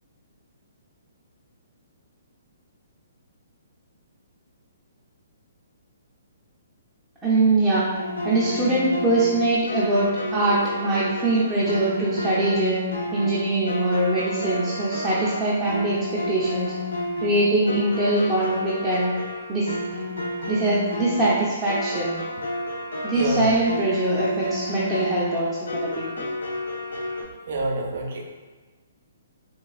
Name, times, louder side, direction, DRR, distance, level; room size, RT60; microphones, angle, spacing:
voice 1, 7.2-7.9 8.2-12.8 13.1-16.7 17.2-19.1 19.5-19.8 20.5-22.2 23.0-26.3, right 2 dB, 10° right, -10 dB, 0.6 m, -23 dB
sound 1, 7.9-27.2, left 1 dB, 80° left, 0.5 m, -31 dB
voice 2, 23.1-23.5 27.5-28.2, right 2 dB, 60° right, 1 dB, 0.6 m, -27 dB
4.0 x 2.3 x 2.3 m, 1.3 s
hypercardioid pair, 135°, 0 cm